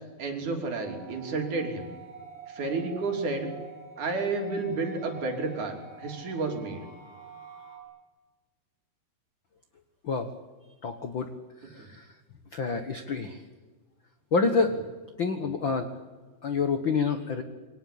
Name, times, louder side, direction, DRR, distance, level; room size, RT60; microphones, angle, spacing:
voice 1, 0.2-1.9 2.5-3.5 4.0-6.8 11.8-11.9, right 3 dB, 50° right, 3 dB, 4.6 m, -31 dB
sound 1, 0.6-7.8, right 4 dB, 25° left, 8.1 m, -46 dB
voice 2, 10.8-11.3 11.6-12.1 12.5-13.4 14.3-14.8 15.2-15.9 16.4-17.4, left 4 dB, 70° left, 7 dB, 1.1 m, -27 dB
28.0 x 23.5 x 8.6 m, 1.4 s
omnidirectional pair, 4.5 m